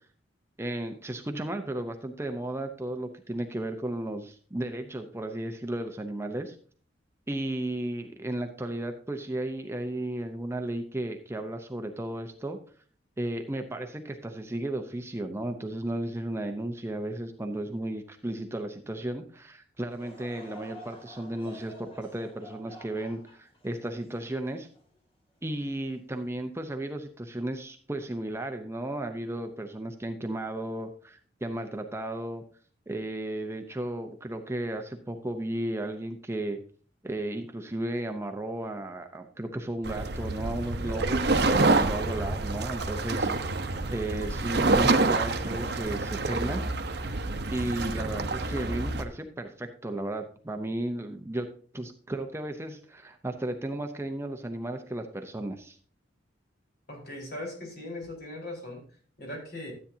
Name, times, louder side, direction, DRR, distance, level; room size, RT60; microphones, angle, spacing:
voice 1, 0.6-6.6 7.3-12.6 13.2-24.7 25.4-32.4 32.9-36.6 37.0-43.3 43.9-46.7 47.5-51.5 51.7-55.8, right 1 dB, 15° right, 5 dB, 0.7 m, -34 dB
Laughter / Crowd, 19.9-25.4 25.9-26.0 26.8-27.1, equal, 30° left, 2.5 m, -50 dB
sound 1, 39.8-49.0, right 3 dB, 60° right, 0.9 m, -27 dB
voice 2, 56.9-58.8 59.2-59.7, left 1 dB, 60° left, 0 dB, 4.2 m, -39 dB
13.0 x 8.6 x 2.7 m, 0.44 s
head